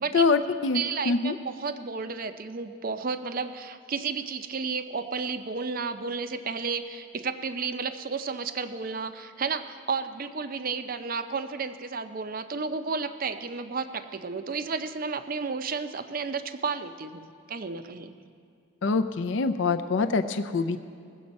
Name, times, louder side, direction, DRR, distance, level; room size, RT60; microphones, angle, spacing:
voice 1, 0.1-1.3 18.8-20.8, left 4 dB, 60° left, 9 dB, 0.4 m, -25 dB
voice 2, 0.7-18.1, right 5 dB, 40° right, 10 dB, 0.5 m, -32 dB
19.5 x 7.8 x 5.3 m, 2.4 s
head